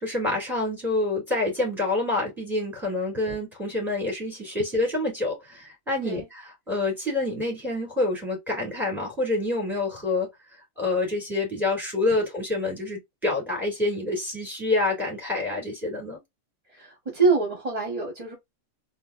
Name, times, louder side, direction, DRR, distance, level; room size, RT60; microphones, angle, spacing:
voice 1, 0.0-10.3 10.8-16.2, left 2 dB, ahead, 2.4 m, -27 dB
voice 2, 16.7-18.3, right 4 dB, 30° right, 1.0 m, -25 dB
4.0 x 2.4 x 2.4 m
omnidirectional pair, 1.4 m